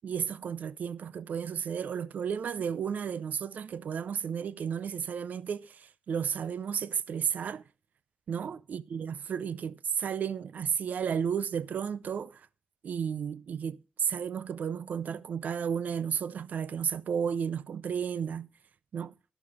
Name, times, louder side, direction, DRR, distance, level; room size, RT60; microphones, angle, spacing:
voice 1, 0.0-7.6 8.3-12.4 12.8-18.5 18.9-19.1, right 7 dB, 75° right, 0.4 m, -33 dB
11.5 x 6.8 x 4.8 m
wide cardioid pair, 120°, 3 cm